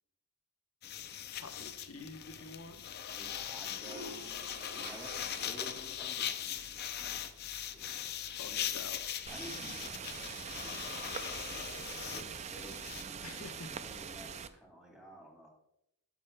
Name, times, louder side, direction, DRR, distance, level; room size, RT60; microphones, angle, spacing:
sound 1, 0.8-13.0, left 9 dB, 45° left, 0.5 m, -40 dB
voice 1, 1.4-2.9 8.4-9.0 13.2-13.7, left 3 dB, 70° left, 6 dB, 1.0 m, -47 dB
sound 2, 1.8-2.2 3.5-7.3, right 1 dB, 50° right, 1.7 m, -50 dB
voice 2, 3.1-4.3 4.7-8.0 9.3-11.8 12.0-13.4 13.7-15.5, right 1 dB, 5° right, 0 dB, 2.1 m, -53 dB
sound 3, 9.3-14.5, right 7 dB, 30° right, 0.3 m, -43 dB
12.0 x 7.1 x 2.2 m, 0.77 s
head